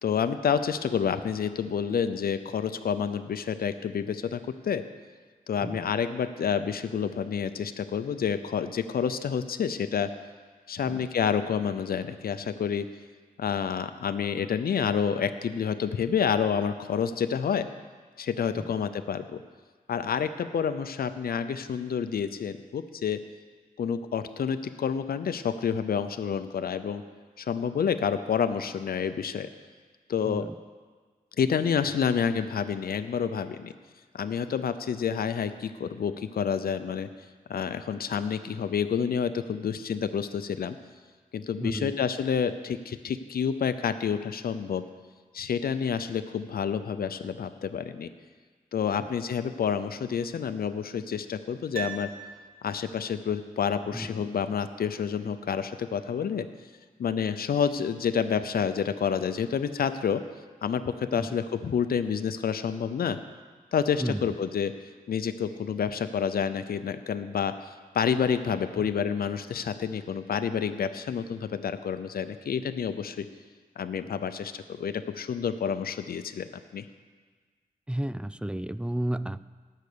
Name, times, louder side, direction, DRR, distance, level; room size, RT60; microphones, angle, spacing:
voice 1, 0.0-4.8 5.5-10.1 10.7-12.9 13.4-17.7 18.2-19.4 19.9-23.2 23.8-27.0 27.4-29.5 30.1-30.5 31.4-33.7 34.1-37.1 37.5-40.8 41.3-44.8 45.3-48.1 48.7-52.1 52.6-56.5 57.0-60.2 60.6-63.2 63.7-64.7 65.1-67.7 67.9-73.3 73.8-76.5 76.7-76.9, left 7 dB, 90° left, 10 dB, 0.6 m, -29 dB
voice 2, 30.2-30.6 41.6-41.9 49.0-49.1 53.9-54.3 61.1-61.3 64.0-64.4 68.8-68.9 77.9-79.5, right 1 dB, 5° right, 15 dB, 0.4 m, -33 dB
Piano, 51.7-53.0 53.3-53.4, right 6 dB, 75° right, 1.7 m, -39 dB
17.5 x 6.6 x 6.8 m, 1.5 s
wide cardioid pair, 80°, 15 cm